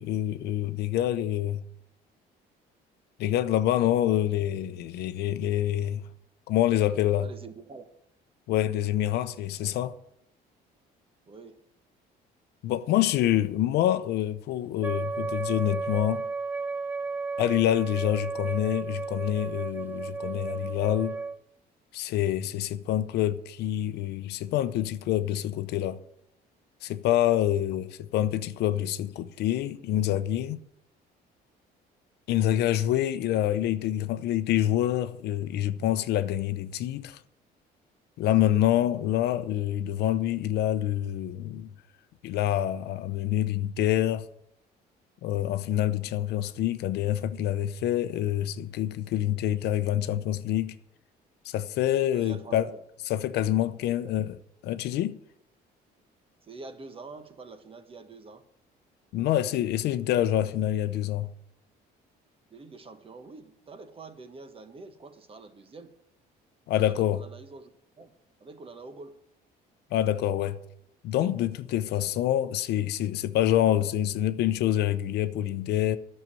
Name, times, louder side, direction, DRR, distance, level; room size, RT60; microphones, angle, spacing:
voice 1, 0.0-1.6 3.2-6.0 6.5-7.3 8.5-9.9 12.6-16.3 17.4-21.2 21.9-26.0 26.8-30.6 32.3-37.2 38.2-41.7 42.2-44.3 45.2-50.8 51.4-52.7 53.1-54.4 54.6-55.2 59.1-61.3 66.7-67.2 69.9-70.6 71.0-76.0, left 12 dB, 80° left, 0.7 m, -26 dB
voice 2, 7.2-7.9 11.3-11.6 27.4-27.6 38.4-38.6 52.1-52.8 54.0-54.1 56.4-58.4 62.5-65.9 66.9-67.7 68.0-68.1 68.4-69.2, right 3 dB, 35° right, 1.4 m, -46 dB
Wind instrument woodwind instrument, 14.8-21.4, right 4 dB, 10° right, 0.4 m, -33 dB
11.0 x 6.7 x 8.9 m
cardioid pair, 110°, 17 cm